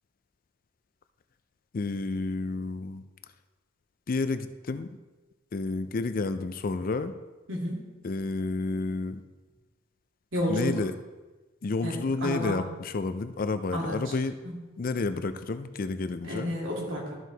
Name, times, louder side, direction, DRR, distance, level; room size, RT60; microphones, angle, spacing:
voice 1, 1.7-3.0 4.1-5.0 5.5-7.1 8.0-9.2 10.5-10.9 11.6-14.4 14.8-16.5, left 3 dB, 45° left, 11 dB, 0.4 m, -30 dB
voice 2, 7.5-7.8 10.3-10.8 11.8-11.9 12.2-12.6 13.7-14.0 14.4-14.6 16.3-17.1, equal, 75° right, -3 dB, 2.5 m, -30 dB
13.0 x 4.7 x 4.0 m, 1.2 s
head